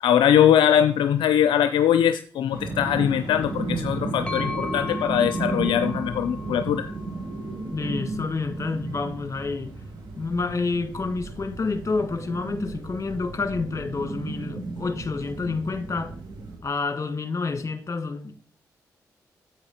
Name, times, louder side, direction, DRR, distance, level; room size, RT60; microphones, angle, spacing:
voice 1, 0.0-6.9, left 10 dB, 75° left, 0.4 m, -21 dB
sound 1, 2.5-16.6, right 3 dB, 65° right, 2.6 m, -33 dB
sound 2, 4.3-8.0, left 4 dB, 15° left, 1.6 m, -37 dB
voice 2, 7.7-9.8 10.2-16.1 16.6-18.4, left 4 dB, 35° left, 1.5 m, -29 dB
8.9 x 8.1 x 4.2 m
hypercardioid pair, 40°, 8 cm